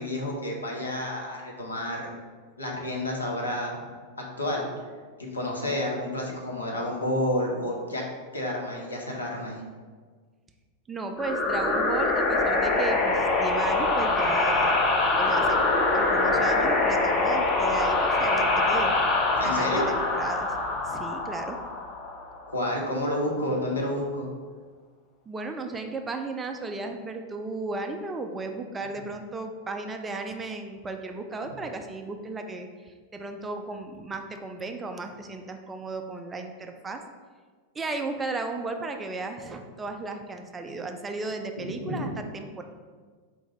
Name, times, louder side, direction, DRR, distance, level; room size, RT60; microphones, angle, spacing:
voice 1, 0.0-2.0 2.6-3.8 4.2-4.7 5.3-8.0 8.3-9.6 19.4-19.9 22.5-24.3 41.6-42.1, left 1 dB, 80° left, -1 dB, 0.7 m, -30 dB
voice 2, 10.9-14.8 15.2-15.6 15.9-18.9 19.4-20.5 20.8-21.6 25.3-37.0 37.8-42.6, right 3 dB, 15° right, 5 dB, 0.3 m, -35 dB
sound 1, 11.2-22.5, left 3 dB, 30° left, 0.7 m, -24 dB
4.6 x 2.6 x 3.3 m, 1.5 s
figure-of-eight pair, 90°, 0 cm